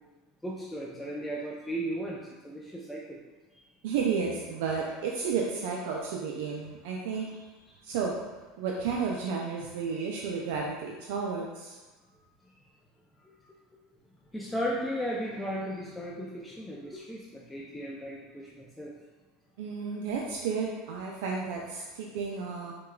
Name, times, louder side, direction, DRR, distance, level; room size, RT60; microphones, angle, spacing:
voice 1, 0.4-3.2 7.2-7.8 13.2-13.3 14.3-18.9, equal, 10° left, -4 dB, 0.4 m, -36 dB
voice 2, 3.8-7.3 7.8-8.1 8.6-11.8 19.6-22.7, right 5 dB, 75° right, -1 dB, 0.3 m, -32 dB
4.6 x 2.2 x 2.2 m, 1.2 s
supercardioid pair, 100°, 0 cm